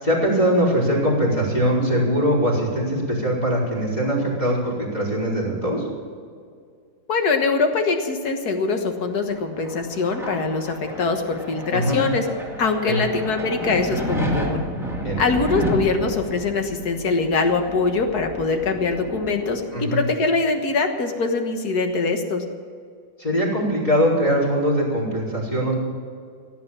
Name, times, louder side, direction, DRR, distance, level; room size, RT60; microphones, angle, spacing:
voice 1, 0.0-5.8 11.7-12.0 12.9-13.0 15.0-15.2 19.7-20.0 23.2-25.7, equal, 20° left, -6 dB, 4.5 m, -21 dB
voice 2, 7.1-12.2 12.6-14.6 15.2-22.4, left 4 dB, 60° left, 5 dB, 1.9 m, -23 dB
sound 1, 9.0-20.3, right 1 dB, ahead, 1.9 m, -31 dB
16.0 x 9.0 x 7.2 m, 2.2 s
omnidirectional pair, 1.9 m